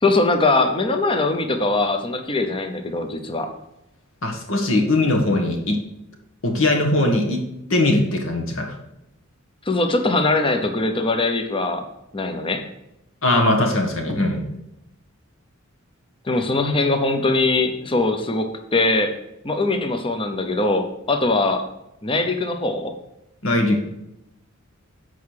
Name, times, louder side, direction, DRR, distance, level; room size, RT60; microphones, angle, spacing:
voice 1, 0.0-3.5 9.7-11.8 12.1-12.6 16.3-19.1 19.4-21.6 22.0-22.9, left 2 dB, 25° left, 6 dB, 0.9 m, -21 dB
voice 2, 4.2-5.8 6.4-7.4 7.7-8.8 13.2-14.5 23.4-23.8, left 2 dB, 65° left, 2 dB, 1.6 m, -20 dB
7.8 x 4.8 x 6.5 m, 0.86 s
head